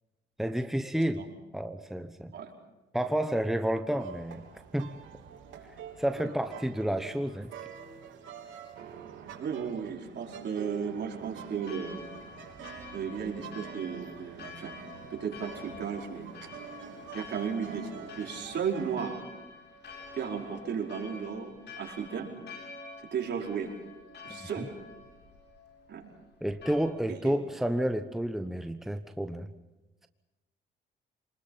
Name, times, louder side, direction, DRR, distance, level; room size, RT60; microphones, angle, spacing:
voice 1, 0.4-1.2 1.5-2.3 2.9-4.4 4.7-5.0 6.0-7.5 26.4-29.5, right 1 dB, ahead, 8 dB, 1.0 m, -30 dB
sound 1, 4.0-19.0, right 7 dB, 80° right, 3.8 m, -47 dB
voice 2, 9.4-12.0 12.9-14.7 15.1-16.5 17.1-19.2 20.1-22.3 23.1-23.7 24.2-24.7 25.9-26.1 27.1-27.4, right 7 dB, 60° right, -1 dB, 5.0 m, -35 dB
Church bell, 11.6-26.8, left 4 dB, 60° left, 7.2 m, -48 dB
28.0 x 21.0 x 5.7 m, 1.1 s
cardioid pair, 90°, 20 cm